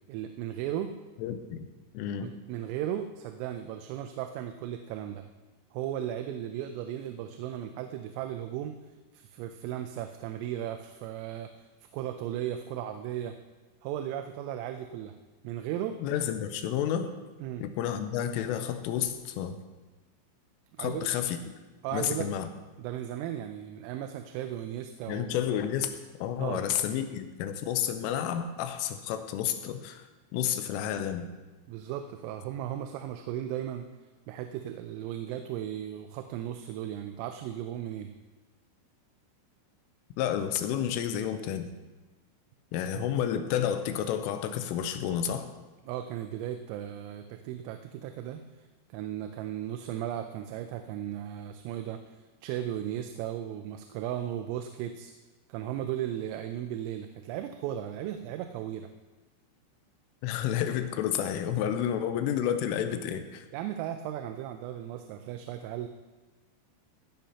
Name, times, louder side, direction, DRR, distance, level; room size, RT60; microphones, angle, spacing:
voice 1, 0.1-0.9 2.2-5.2 5.7-8.8 9.1-11.6 11.9-13.4 13.8-15.2 15.4-16.0 17.4-17.6 20.8-21.1 21.8-22.3 22.8-25.3 26.4-26.7 31.7-33.9 34.3-38.1 42.9-43.1 45.9-48.4 48.9-55.1 55.5-58.9 63.5-65.9, right 11 dB, 85° right, 7 dB, 3.2 m, -36 dB
voice 2, 1.2-1.7 1.9-2.3 16.0-17.1 17.6-19.6 20.8-21.4 21.9-22.5 25.1-25.9 26.2-30.0 30.3-31.3 40.2-41.7 42.7-45.5 60.2-63.4, left 9 dB, 85° left, 8 dB, 3.2 m, -30 dB
16.0 x 10.5 x 2.9 m, 1.2 s
omnidirectional pair, 5.9 m